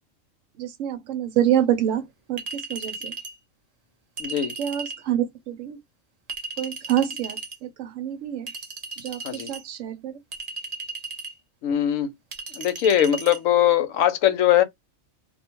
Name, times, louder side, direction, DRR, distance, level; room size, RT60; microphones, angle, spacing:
voice 1, 0.6-2.0 2.3-3.1 4.6-5.8 6.6-8.5 9.0-9.2 9.5-10.1, right 10 dB, 75° right, 0.9 m, -26 dB
Chink clink, 2.4-3.4 4.2-5.0 6.3-7.6 8.5-9.6 10.3-11.4 12.3-13.4, right 3 dB, 50° right, 0.4 m, -35 dB
voice 2, 4.2-4.5 9.2-9.5 11.6-12.1 12.6-14.6, left 11 dB, 80° left, 1.0 m, -21 dB
2.4 x 2.2 x 2.9 m
omnidirectional pair, 1.4 m